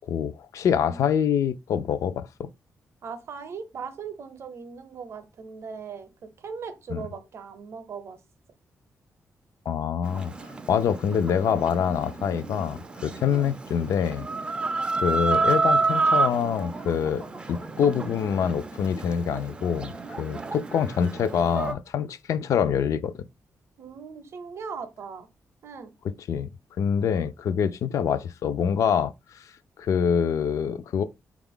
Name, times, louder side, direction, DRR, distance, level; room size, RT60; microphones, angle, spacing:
voice 1, 0.1-2.5 6.9-7.0 9.7-14.3 15.0-17.2 17.5-23.2 26.3-26.5 26.8-29.5 29.8-31.0, left 7 dB, 65° left, 0.3 m, -25 dB
voice 2, 0.8-1.1 3.0-8.2 13.3-13.5 23.8-25.3 25.6-25.9, right 5 dB, 50° right, 0.6 m, -39 dB
Chicken rooster, 10.0-21.7, right 3 dB, 20° right, 0.3 m, -29 dB
3.9 x 2.4 x 3.5 m
wide cardioid pair, 170°, 6 cm